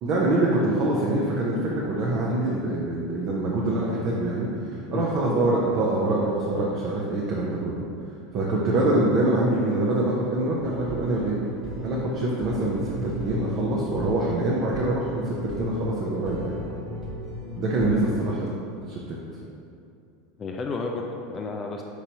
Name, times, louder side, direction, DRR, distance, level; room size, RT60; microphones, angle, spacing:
voice 1, 0.0-7.8 8.3-11.4 11.8-16.7 17.6-18.5 18.9-19.2, right 2 dB, 50° right, -4 dB, 0.6 m, -25 dB
sound 1, 10.6-18.3, left 1 dB, 35° right, 1.2 m, -35 dB
voice 2, 20.4-21.8, left 4 dB, 30° left, 1 dB, 0.4 m, -32 dB
4.6 x 3.9 x 2.8 m, 2.6 s
hypercardioid pair, 95°, 0 cm